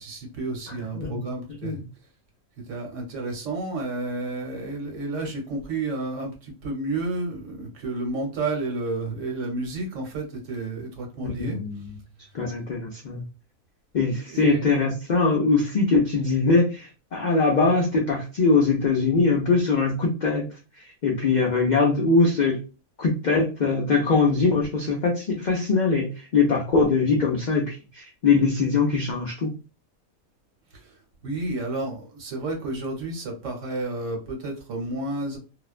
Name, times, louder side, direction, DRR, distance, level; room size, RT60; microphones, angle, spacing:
voice 1, 0.0-1.8 2.7-11.6 14.3-14.7 30.7-30.9 31.2-35.4, right 2 dB, 65° right, 1 dB, 1.1 m, -31 dB
voice 2, 0.7-1.2 1.5-1.8 11.4-11.9 12.3-13.2 13.9-20.5 20.8-22.6 23.0-29.5, left 4 dB, 65° left, -1 dB, 0.4 m, -22 dB
2.4 x 2.1 x 2.4 m, 0.33 s
omnidirectional pair, 1.4 m